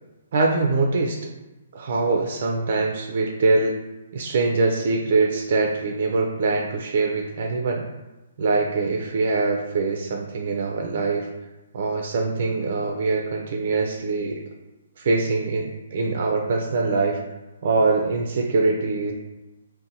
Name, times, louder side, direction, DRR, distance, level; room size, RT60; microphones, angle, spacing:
voice 1, 0.3-1.3 1.7-3.8 4.1-7.9 8.4-11.3 11.7-14.4 15.0-17.2 17.6-19.1, right 3 dB, 55° right, 1 dB, 0.3 m, -23 dB
2.7 x 2.1 x 2.7 m, 1.0 s
hypercardioid pair, 150°, 0 cm